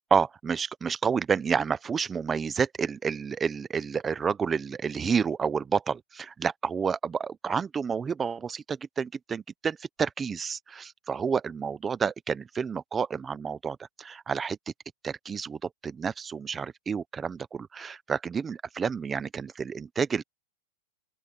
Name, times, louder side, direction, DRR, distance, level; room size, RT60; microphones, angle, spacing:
voice 1, 0.1-14.6 15.0-20.2, right 6 dB, 10° right, 0.6 m, -30 dB
open air
supercardioid pair, 170°, 0 cm